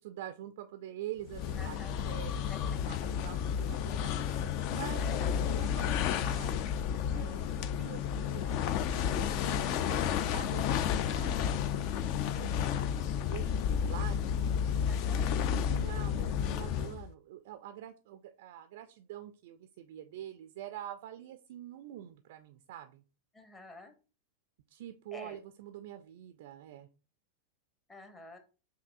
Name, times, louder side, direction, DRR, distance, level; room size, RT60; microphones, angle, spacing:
voice 1, 0.0-2.3 2.6-4.1 4.7-6.6 7.1-14.3 15.1-23.0 24.7-26.9, right 12 dB, 55° right, 8 dB, 0.3 m, -46 dB
sound 1, 1.3-17.1, left 8 dB, 45° left, 0.3 m, -31 dB
voice 2, 1.6-2.0 2.3-2.6 4.9-5.5 14.9-15.3 23.3-23.9 25.1-25.4 27.9-28.4, left 2 dB, 15° left, 8 dB, 0.8 m, -49 dB
7.5 x 2.7 x 2.5 m, 0.33 s
figure-of-eight pair, 90°, 0 cm